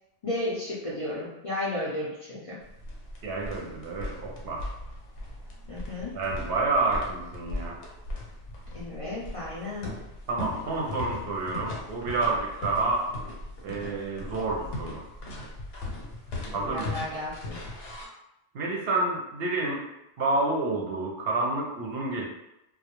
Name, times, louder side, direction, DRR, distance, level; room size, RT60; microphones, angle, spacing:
voice 1, 0.2-2.6 5.7-6.2 8.7-9.9 16.5-17.6, left 1 dB, 50° left, -8 dB, 0.4 m, -33 dB
sound 1, 2.6-18.1, left 1 dB, 85° left, 0.9 m, -38 dB
voice 2, 3.2-4.7 6.1-7.8 10.3-13.1 13.6-15.0 16.5-16.9 18.5-19.8 20.2-22.3, right 3 dB, 65° right, -2 dB, 0.7 m, -29 dB
2.2 x 2.1 x 2.9 m, 0.89 s
omnidirectional pair, 1.2 m